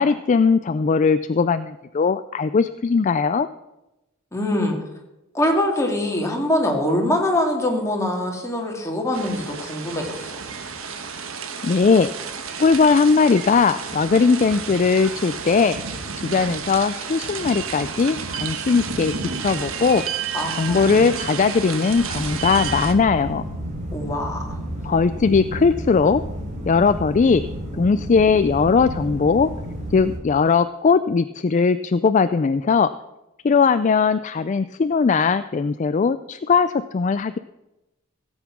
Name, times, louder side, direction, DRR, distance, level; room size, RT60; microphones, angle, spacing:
voice 1, 0.0-3.5 11.6-12.1 12.6-15.8 16.2-19.1 19.4-20.0 20.5-23.4 24.8-26.2 26.7-27.4 27.8-29.5 29.9-32.9 33.4-37.4, left 5 dB, 35° left, 12 dB, 0.4 m, -19 dB
voice 2, 4.3-4.8 5.3-10.4 20.3-20.9 23.9-24.6, left 1 dB, 15° left, 1 dB, 2.3 m, -23 dB
sound 1, 9.1-22.9, right 6 dB, 70° right, 1.3 m, -31 dB
sound 2, 21.9-30.2, equal, 35° right, 3.2 m, -32 dB
16.5 x 8.1 x 6.0 m, 0.97 s
head